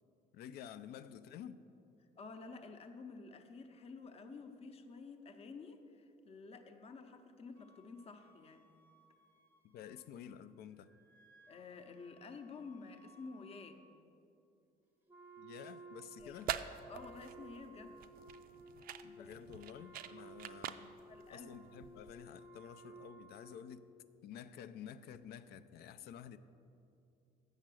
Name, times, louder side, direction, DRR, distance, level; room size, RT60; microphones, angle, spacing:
voice 1, 0.3-1.6 9.6-10.9 15.4-16.6 19.0-20.9 21.3-23.9 24.2-26.4, left 9 dB, 70° left, 12 dB, 0.4 m, -51 dB
voice 2, 2.2-8.7 11.5-13.8 16.2-16.3 16.9-18.0 19.2-19.3 20.2-20.3 21.1-21.7 26.0-26.1, left 4 dB, 35° left, 7 dB, 0.7 m, -51 dB
Wind instrument woodwind instrument, 7.5-10.5 10.7-13.8, left 1 dB, 10° left, 1.0 m, -67 dB
Wind instrument woodwind instrument 2, 15.1-23.9, right 2 dB, 10° right, 0.6 m, -56 dB
sound 1, 16.2-22.2, right 11 dB, 60° right, 0.4 m, -45 dB
7.2 x 6.6 x 6.2 m, 2.7 s
cardioid pair, 110°, 17 cm